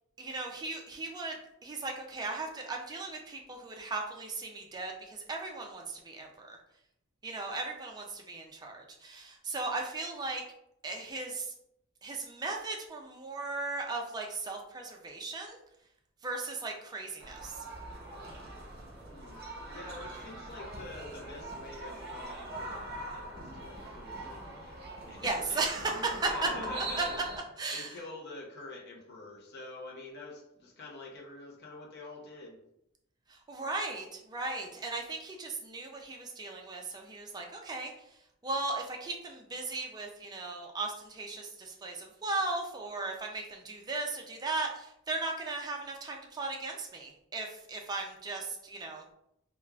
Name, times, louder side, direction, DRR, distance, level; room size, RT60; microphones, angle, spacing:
voice 1, 0.2-1.4 1.6-6.6 7.2-10.4 10.8-11.5 12.0-15.6 16.2-17.6 25.2-25.9 26.2-26.5 27.6-27.9 33.3-37.9 38.4-49.0, right 3 dB, 20° right, 1 dB, 0.3 m, -37 dB
sound 1, 17.2-27.4, right 1 dB, 50° right, 0.7 m, -42 dB
voice 2, 19.1-24.8 25.1-27.2 27.7-32.6, left 2 dB, 50° left, -2 dB, 0.7 m, -46 dB
3.4 x 2.3 x 2.2 m, 0.79 s
head